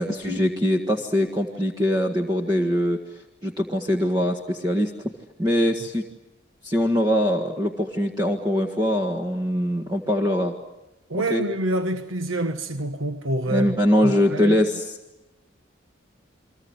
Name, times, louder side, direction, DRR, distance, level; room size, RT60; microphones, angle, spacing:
voice 1, 0.0-3.0 3.4-4.9 5.4-6.1 6.6-10.6 11.1-11.4 13.5-14.9, equal, 20° right, 1.7 m, -22 dB
voice 2, 11.1-13.8 14.0-14.6, right 1 dB, 85° right, 1.3 m, -27 dB
30.0 x 23.0 x 8.0 m
head